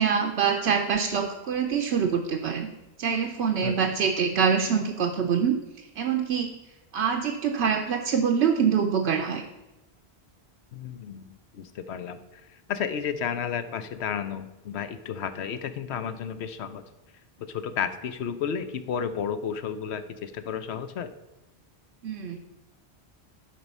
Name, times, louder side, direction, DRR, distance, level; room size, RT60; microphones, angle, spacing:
voice 1, 0.0-2.7 3.0-5.6 6.0-6.5 6.9-9.5 22.0-22.4, right 7 dB, 85° right, 3 dB, 0.9 m, -25 dB
voice 2, 10.7-11.3 11.5-12.2 12.7-16.8 17.4-21.1, left 7 dB, 85° left, 11 dB, 1.0 m, -32 dB
11.5 x 4.7 x 5.4 m, 1.0 s
omnidirectional pair, 1.1 m